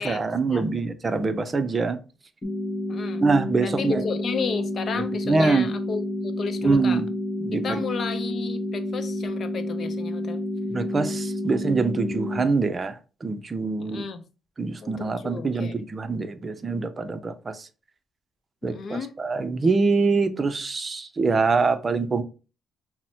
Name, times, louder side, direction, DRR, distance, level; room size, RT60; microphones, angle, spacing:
voice 1, 0.0-2.0 3.2-3.9 5.3-5.7 6.6-7.1 7.4-7.8 10.7-14.0 14.6-17.7 18.6-22.2, right 4 dB, 35° right, 0.5 m, -24 dB
sound 1, 2.4-12.4, left 1 dB, 30° left, 1.1 m, -30 dB
voice 2, 2.9-3.2 3.6-7.0 7.5-10.4 13.8-14.2 14.8-15.8 18.6-19.1, left 5 dB, 55° left, 0.6 m, -33 dB
5.8 x 2.1 x 2.8 m
cardioid pair, 90°, 0 cm